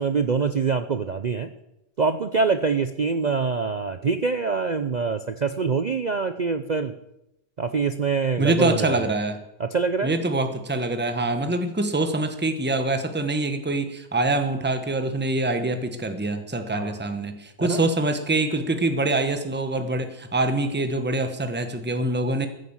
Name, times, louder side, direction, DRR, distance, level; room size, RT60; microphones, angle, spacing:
voice 1, 0.0-1.5 2.0-6.9 7.6-9.1 9.6-10.1 16.7-17.0 17.6-17.8, right 5 dB, 60° right, 9 dB, 0.4 m, -25 dB
voice 2, 8.4-9.4 10.0-22.5, right 2 dB, 10° right, 8 dB, 1.0 m, -25 dB
14.5 x 9.8 x 7.2 m, 0.86 s
omnidirectional pair, 1.6 m